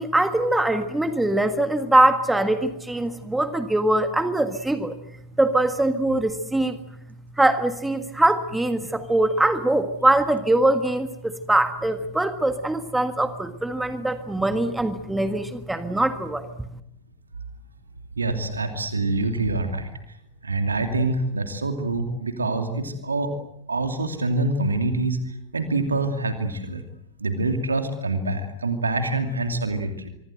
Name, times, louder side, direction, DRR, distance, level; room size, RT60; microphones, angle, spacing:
voice 1, 0.0-5.0 5.4-6.8 7.4-16.5, right 1 dB, 5° right, 9 dB, 1.7 m, -22 dB
voice 2, 18.2-19.9 20.4-23.3 23.7-26.8 27.2-30.1, right 2 dB, 75° right, 6 dB, 2.7 m, -25 dB
25.5 x 24.5 x 8.0 m, 0.79 s
figure-of-eight pair, 90°, 0 cm